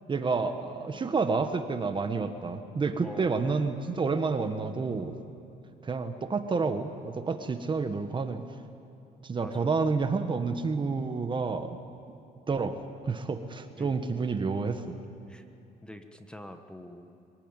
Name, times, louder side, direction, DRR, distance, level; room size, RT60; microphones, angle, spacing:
voice 1, 0.1-5.2 5.8-8.4 9.2-11.8 12.5-14.8, right 4 dB, 30° right, 8 dB, 1.4 m, -29 dB
voice 2, 3.0-3.4 9.4-9.7 13.8-14.0 15.3-15.4 15.8-17.1, equal, 5° left, 6 dB, 1.4 m, -45 dB
23.5 x 17.5 x 9.1 m, 2.8 s
cardioid pair, 110°, 17 cm